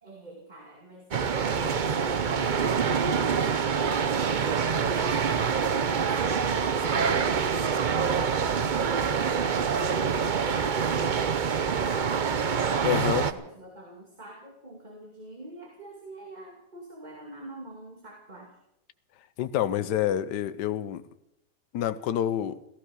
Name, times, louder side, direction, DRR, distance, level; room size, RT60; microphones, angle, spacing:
voice 1, 0.0-9.5 10.0-18.6, right 2 dB, 25° right, 2.5 m, -44 dB
sound 1, 1.1-13.3, right 6 dB, 55° right, 0.5 m, -26 dB
voice 2, 12.8-13.3 19.4-21.0 21.7-22.6, left 10 dB, 75° left, 1.4 m, -27 dB
15.0 x 15.0 x 6.3 m
omnidirectional pair, 1.8 m